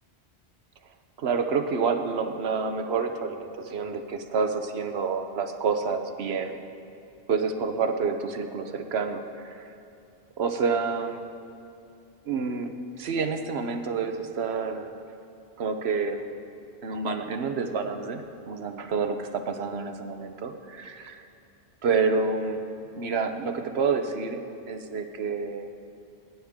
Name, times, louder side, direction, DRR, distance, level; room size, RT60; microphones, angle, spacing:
voice 1, 1.2-6.5 7.3-9.7 10.4-11.3 12.3-14.9 15.6-16.3 16.8-21.2 21.8-22.6 23.0-25.7, right 5 dB, 70° right, 7 dB, 1.1 m, -28 dB
21.0 x 10.5 x 3.6 m, 2.7 s
omnidirectional pair, 1.1 m